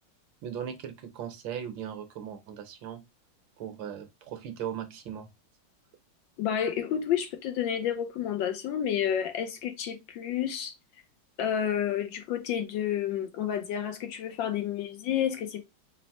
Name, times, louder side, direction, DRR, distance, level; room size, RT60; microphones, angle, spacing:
voice 1, 0.4-3.0 3.6-5.3, right 9 dB, 70° right, 1.4 m, -38 dB
voice 2, 6.4-10.7 11.4-15.7, left 9 dB, 75° left, 1.3 m, -30 dB
4.1 x 2.0 x 4.3 m
omnidirectional pair, 2.3 m